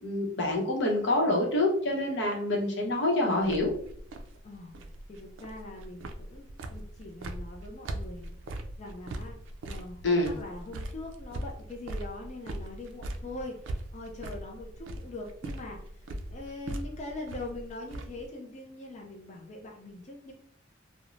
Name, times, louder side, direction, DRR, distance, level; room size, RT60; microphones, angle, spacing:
voice 1, 0.0-3.7 10.0-10.3, left 1 dB, 65° left, -1 dB, 0.7 m, -26 dB
sound 1, 3.4-18.3, right 1 dB, 75° right, 0.3 m, -40 dB
voice 2, 4.4-4.7 5.1-8.4 8.8-9.4 9.7-20.3, left 2 dB, 35° left, 0 dB, 0.4 m, -42 dB
2.4 x 2.0 x 3.1 m, 0.62 s
head